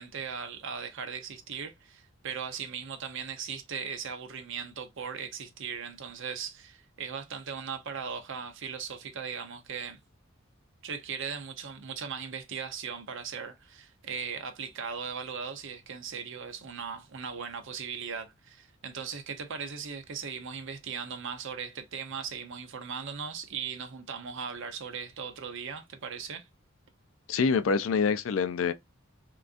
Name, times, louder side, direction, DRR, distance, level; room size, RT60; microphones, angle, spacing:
voice 1, 0.0-10.0 10.8-26.5, right 6 dB, 65° right, 0.7 m, -38 dB
voice 2, 27.3-28.7, left 5 dB, 70° left, 0.4 m, -26 dB
3.7 x 2.4 x 2.4 m
head